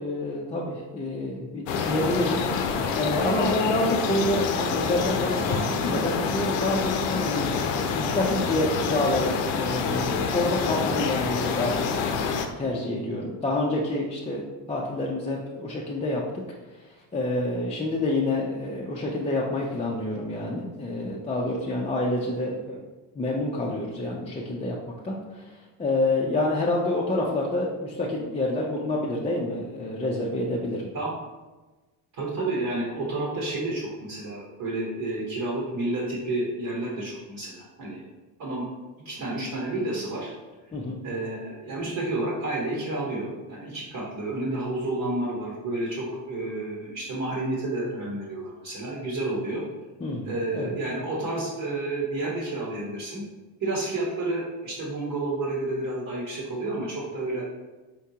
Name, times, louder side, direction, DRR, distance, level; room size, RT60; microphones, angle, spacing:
voice 1, 0.0-2.4 2.7-7.5 7.9-11.8 12.6-16.2 17.1-22.8 23.2-24.8 25.0-30.9 40.7-41.0 50.0-50.7, left 1 dB, 15° left, -4 dB, 0.4 m, -28 dB
sound 1, 1.7-12.5, left 5 dB, 85° left, 0.6 m, -27 dB
voice 2, 32.1-38.0 38.4-38.7 39.0-40.3 41.0-49.6 50.3-53.2 53.6-57.4, right 2 dB, 55° right, -4 dB, 1.2 m, -30 dB
4.4 x 3.5 x 2.8 m, 1.2 s
cardioid pair, 115°, 43 cm